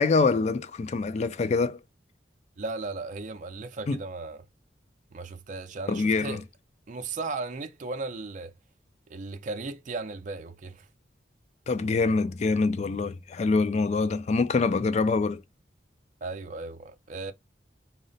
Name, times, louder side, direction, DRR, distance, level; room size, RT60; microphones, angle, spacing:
voice 1, 0.0-1.8 3.9-4.0 5.9-6.4 11.7-15.4, left 4 dB, 40° left, 0.3 m, -25 dB
voice 2, 2.6-4.5 5.1-6.4 6.9-8.5 9.1-10.9 16.2-17.3, right 3 dB, 45° right, 0.5 m, -36 dB
3.9 x 2.1 x 3.9 m
head